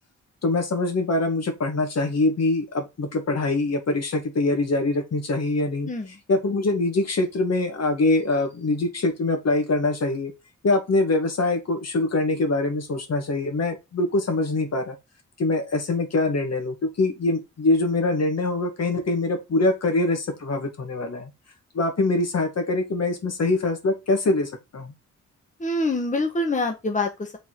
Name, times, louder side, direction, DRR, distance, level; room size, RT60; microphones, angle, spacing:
voice 1, 0.4-5.9 6.3-10.3 10.6-15.0 15.4-21.3 21.7-24.9, left 2 dB, 55° left, 1.9 m, -24 dB
voice 2, 25.6-27.4, left 2 dB, 25° left, 1.4 m, -25 dB
6.2 x 4.3 x 4.6 m
cardioid pair, 65°, 30 cm